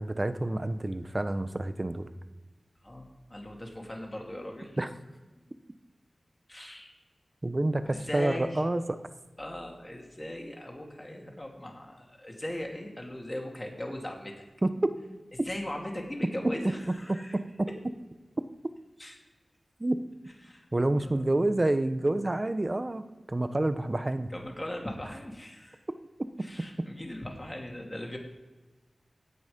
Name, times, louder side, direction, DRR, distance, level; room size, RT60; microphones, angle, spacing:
voice 1, 0.0-2.1 4.8-4.9 7.4-9.0 14.6-14.9 17.3-17.4 19.8-20.0 20.7-24.3 26.8-26.9, right 1 dB, 35° right, 10 dB, 0.9 m, -28 dB
voice 2, 2.8-4.8 6.5-6.9 7.8-8.6 9.4-14.4 15.3-17.4 19.0-19.2 20.4-20.7 21.0-21.4 24.3-25.8 26.4-28.2, left 1 dB, 25° left, 1 dB, 3.0 m, -39 dB
17.0 x 6.2 x 5.3 m, 1.2 s
cardioid pair, 45°, 0 cm